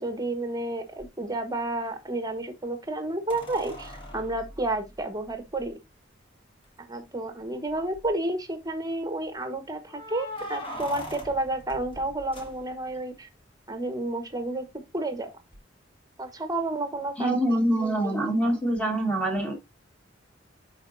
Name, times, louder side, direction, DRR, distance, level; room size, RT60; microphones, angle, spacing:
voice 1, 0.0-5.8 6.8-13.3 13.7-14.7 14.9-15.3 16.2-17.4 17.8-18.2, right 2 dB, 20° right, 1.2 m, -31 dB
sound 1, 1.0-1.1 3.3-5.7 6.6-6.7 7.0-7.1 7.7-8.2 9.9-13.0 15.5-15.6, left 1 dB, 30° left, 1.8 m, -41 dB
voice 2, 17.2-19.5, right 1 dB, 5° left, 1.7 m, -25 dB
10.5 x 4.2 x 2.6 m
head